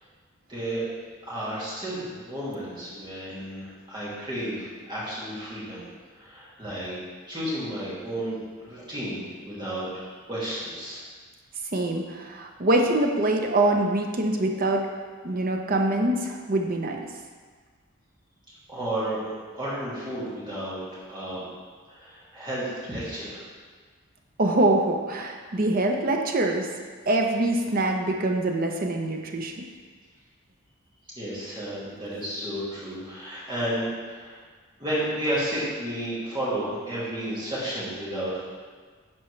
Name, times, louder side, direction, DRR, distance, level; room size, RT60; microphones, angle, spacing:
voice 1, 0.5-0.8 1.2-5.9 6.1-7.0 7.3-11.0 18.7-19.3 19.5-21.4 21.9-23.4 31.2-34.4 34.8-38.5, right 1 dB, 20° right, -9 dB, 2.2 m, -32 dB
voice 2, 11.7-14.9 15.2-17.0 24.4-26.7 27.1-29.5, right 2 dB, 45° right, 3 dB, 0.7 m, -24 dB
10.5 x 4.4 x 3.2 m, 1.5 s
head